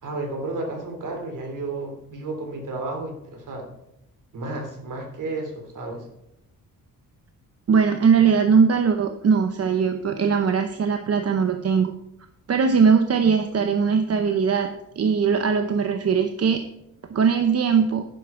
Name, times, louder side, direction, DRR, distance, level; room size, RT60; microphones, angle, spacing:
voice 1, 0.0-3.7 4.3-6.1, right 2 dB, 60° right, 3 dB, 3.3 m, -32 dB
voice 2, 7.7-11.9 12.5-16.7 17.1-18.1, right 6 dB, 45° right, 7 dB, 0.9 m, -20 dB
11.0 x 10.5 x 4.6 m, 0.82 s
wide cardioid pair, 135°, 34 cm